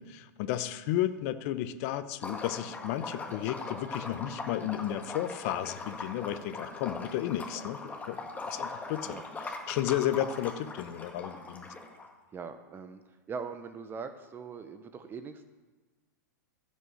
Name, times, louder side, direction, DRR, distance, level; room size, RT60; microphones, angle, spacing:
voice 1, 0.0-11.7, left 12 dB, 50° left, 12 dB, 0.8 m, -33 dB
Liquid, 2.1-12.1, left 3 dB, 15° left, 1.7 m, -40 dB
voice 2, 12.3-13.0 13.3-15.4, right 5 dB, 20° right, 8 dB, 0.8 m, -41 dB
15.0 x 5.5 x 6.5 m, 1.3 s
hypercardioid pair, 115°, 10 cm